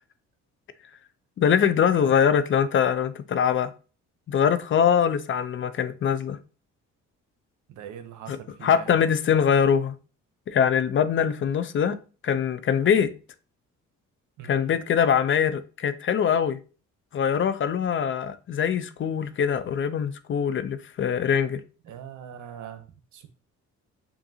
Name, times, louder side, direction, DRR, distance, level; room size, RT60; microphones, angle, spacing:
voice 1, 1.4-3.7 4.3-6.4 8.3-8.4 8.6-10.0 10.5-12.0 12.2-13.1 14.5-16.6 17.1-21.6, left 8 dB, 45° left, 0.4 m, -23 dB
voice 2, 7.7-8.9 14.4-14.7 21.8-22.9 23.1-23.3, right 8 dB, 75° right, 0.7 m, -42 dB
5.4 x 2.6 x 2.6 m
cardioid pair, 90°, 30 cm